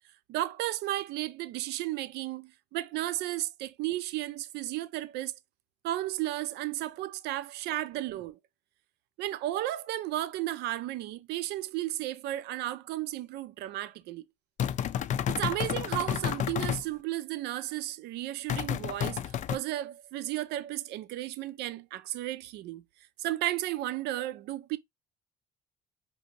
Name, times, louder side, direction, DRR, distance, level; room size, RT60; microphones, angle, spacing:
voice 1, 0.3-5.3 5.8-8.4 9.2-14.2 15.3-22.8 23.2-24.8, right 15 dB, 85° right, 0.5 m, -34 dB
sound 1, 14.6-16.8 18.5-19.6, left 9 dB, 45° left, 0.4 m, -30 dB
5.3 x 2.7 x 2.7 m
cardioid pair, 110°, 17 cm